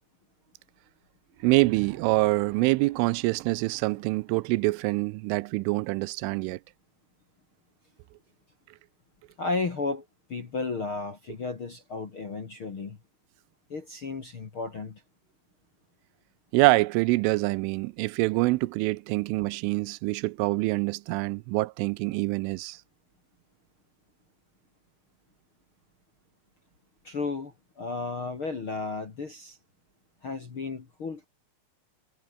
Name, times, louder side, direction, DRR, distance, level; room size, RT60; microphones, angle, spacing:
sound 1, 1.3-5.1 6.3-6.4, right 12 dB, 65° right, 3.9 m, -49 dB
voice 1, 1.4-6.6 16.5-22.8, right 22 dB, 80° right, 3.0 m, -25 dB
voice 2, 9.4-13.0 13.7-15.0 27.0-29.6 30.2-31.3, left 3 dB, 45° left, 1.8 m, -33 dB
omnidirectional pair, 6.0 m